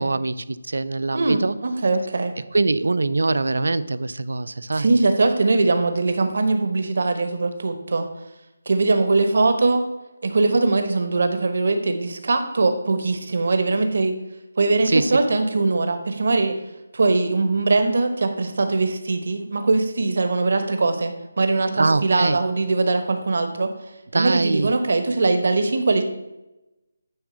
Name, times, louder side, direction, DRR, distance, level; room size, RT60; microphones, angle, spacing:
voice 1, 0.0-1.5 2.5-4.9 14.9-15.1 21.8-22.4 24.1-24.7, right 3 dB, 75° right, 16 dB, 0.5 m, -23 dB
voice 2, 1.1-2.3 4.7-8.1 8.7-9.8 10.2-14.1 14.6-16.6 16.9-23.7 24.1-26.0, right 3 dB, 50° right, 7 dB, 1.1 m, -21 dB
9.8 x 3.8 x 6.2 m, 0.96 s
hypercardioid pair, 180°, 0 cm